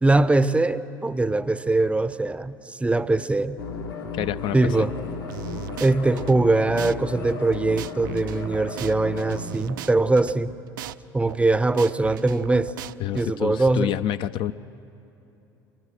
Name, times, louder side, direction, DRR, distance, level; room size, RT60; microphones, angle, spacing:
voice 1, 0.0-3.6 4.5-4.9 5.8-10.5 11.1-12.7 13.1-13.9, right 2 dB, 10° right, 16 dB, 0.6 m, -22 dB
sound 1, 3.6-9.4, left 4 dB, 85° left, 2.9 m, -34 dB
voice 2, 4.1-4.9 13.0-14.5, left 12 dB, 45° left, 13 dB, 0.4 m, -28 dB
sound 2, 5.3-6.4 6.8-7.0 7.3-10.4 10.8-11.0 11.3-13.3, right 13 dB, 70° right, 0.4 m, -38 dB
23.5 x 18.5 x 6.5 m, 3.0 s
figure-of-eight pair, 65°, 11 cm